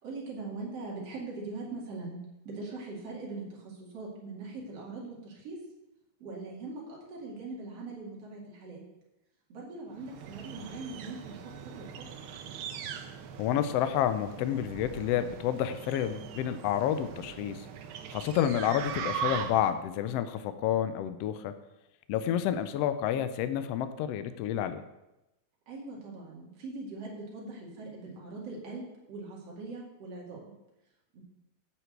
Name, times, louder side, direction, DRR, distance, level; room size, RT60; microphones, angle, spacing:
voice 1, 0.0-2.2 2.4-5.6 6.2-8.8 9.5-11.8 25.7-30.5 31.1-31.2, right 3 dB, 55° right, -4 dB, 3.3 m, -41 dB
sound 1, 10.0-19.8, right 8 dB, 85° right, 1.1 m, -40 dB
voice 2, 13.4-17.7 18.1-21.5 22.1-24.8, left 10 dB, 75° left, 11 dB, 1.5 m, -29 dB
9.3 x 6.1 x 7.9 m, 0.95 s
omnidirectional pair, 3.3 m